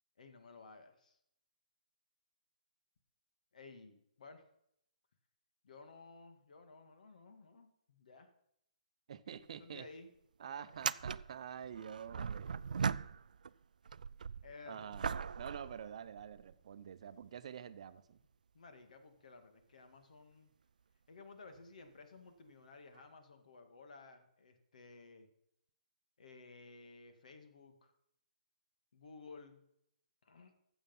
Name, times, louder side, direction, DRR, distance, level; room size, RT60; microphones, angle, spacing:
voice 1, 0.2-1.2 3.5-4.4 5.6-8.3 9.6-10.1 10.4-10.7 14.4-15.4 18.5-20.5 21.1-25.3 26.2-27.9 28.9-29.6 30.2-30.5, left 3 dB, 70° left, 7 dB, 2.1 m, -56 dB
voice 2, 9.1-9.9 10.4-12.6 14.7-15.1 15.4-18.2, right 8 dB, 50° right, 13 dB, 0.7 m, -47 dB
sound 1, 9.3-9.5 9.7-9.8 10.7-13.5 13.8-16.5 17.2-17.3 21.5-21.6 22.9-23.0, right 6 dB, 80° right, 0.4 m, -40 dB
14.5 x 7.2 x 5.5 m, 0.76 s
hypercardioid pair, 160°, 4 cm